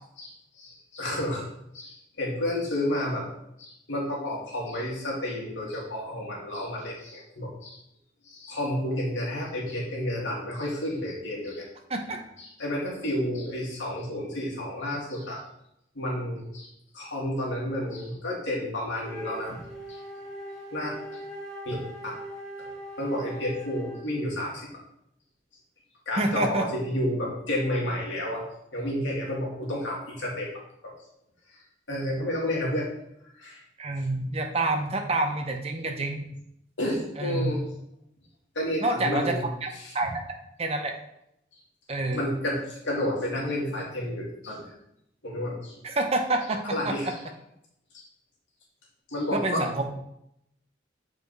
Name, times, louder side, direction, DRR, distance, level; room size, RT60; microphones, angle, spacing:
voice 1, 0.2-1.4 1.7-3.2 3.6-7.8 8.2-11.7 12.4-15.4 15.9-16.7 16.9-19.6 19.9-20.0 20.7-20.9 21.7-21.8 22.6-22.7 23.0-24.7 26.1-28.4 28.7-30.5 30.8-30.9 31.9-32.9 33.4-33.6 36.8-37.6 38.6-39.5 39.8-39.9 42.1-44.7 45.2-45.7 46.6-47.1 47.9-48.1 49.1-49.6, left 1 dB, 85° left, -3 dB, 2.3 m, -31 dB
Wind instrument woodwind instrument, 19.0-24.2, equal, ahead, 2.1 m, -41 dB
voice 2, 26.2-26.7 33.8-36.2 37.2-37.5 38.8-39.3 39.6-39.7 39.9-40.1 40.6-40.9 41.9-42.3 45.8-47.1 49.3-49.8, right 2 dB, 35° right, 4 dB, 0.9 m, -27 dB
7.3 x 4.8 x 4.1 m, 0.78 s
head